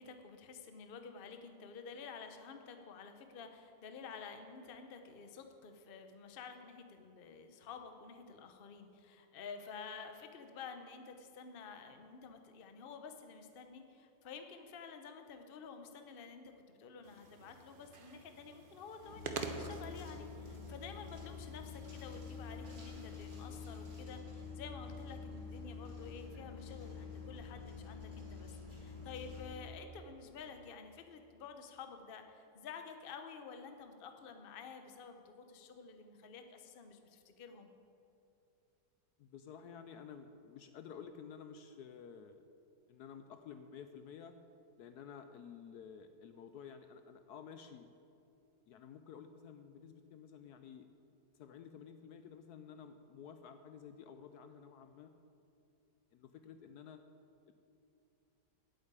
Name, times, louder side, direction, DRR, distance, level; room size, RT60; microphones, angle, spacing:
voice 1, 0.0-37.7, left 5 dB, 45° left, 6 dB, 0.8 m, -51 dB
sound 1, 17.0-24.0, right 4 dB, 45° right, 0.7 m, -49 dB
sound 2, 19.0-29.6, left 5 dB, 25° right, 2.5 m, -47 dB
voice 2, 39.2-42.4 42.9-44.4 44.8-47.9 48.7-50.9 51.3-55.1 56.1-57.0 57.5-57.6, left 7 dB, 70° left, 8 dB, 1.0 m, -52 dB
8.9 x 8.0 x 8.8 m, 2.7 s
omnidirectional pair, 1.9 m